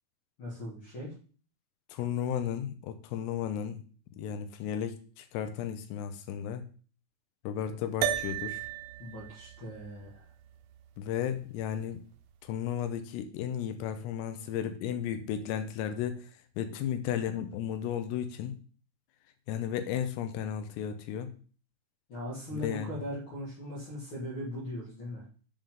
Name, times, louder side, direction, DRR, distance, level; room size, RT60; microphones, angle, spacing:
voice 1, 0.4-1.1 9.0-10.3 22.1-25.2, equal, 45° left, -5 dB, 1.8 m, -39 dB
voice 2, 1.9-3.8 4.1-6.7 7.4-8.7 11.0-12.0 12.4-18.6 19.5-21.3 22.5-23.0, left 9 dB, 90° left, 8 dB, 2.8 m, -34 dB
sound 1, 8.0-12.6, right 10 dB, 85° right, 2.1 m, -37 dB
6.9 x 5.3 x 3.7 m, 0.40 s
omnidirectional pair, 4.7 m